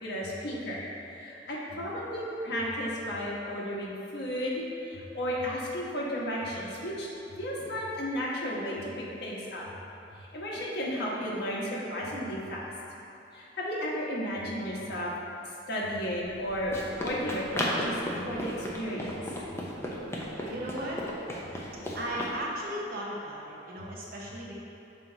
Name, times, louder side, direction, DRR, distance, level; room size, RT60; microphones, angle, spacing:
voice 1, 0.0-7.1 7.4-9.6 10.2-12.7 13.3-15.1 15.7-18.0 18.3-19.1, equal, 60° left, -5 dB, 1.3 m, -33 dB
Run, 16.2-22.4, equal, 15° left, 0.7 m, -35 dB
voice 2, 20.4-21.0 22.0-24.5, right 1 dB, 55° right, -4 dB, 0.9 m, -36 dB
6.2 x 4.5 x 3.9 m, 2.8 s
head